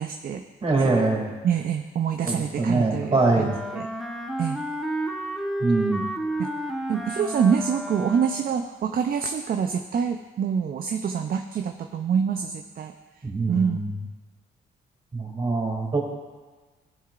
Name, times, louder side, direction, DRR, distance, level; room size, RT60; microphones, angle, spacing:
voice 1, 0.0-0.4 0.8-1.0 1.4-3.9 4.4-4.6 6.4-6.5 6.9-12.9 13.5-13.8, right 7 dB, 45° right, 6 dB, 0.5 m, -26 dB
voice 2, 0.6-1.3 2.3-3.5 5.6-6.0 13.2-13.8 15.1-16.0, right 3 dB, 30° right, -1 dB, 2.5 m, -23 dB
Wind instrument woodwind instrument, 3.2-8.6, right 1 dB, ahead, 1.0 m, -31 dB
15.5 x 7.4 x 2.5 m, 1.3 s
cardioid pair, 90°, 20 cm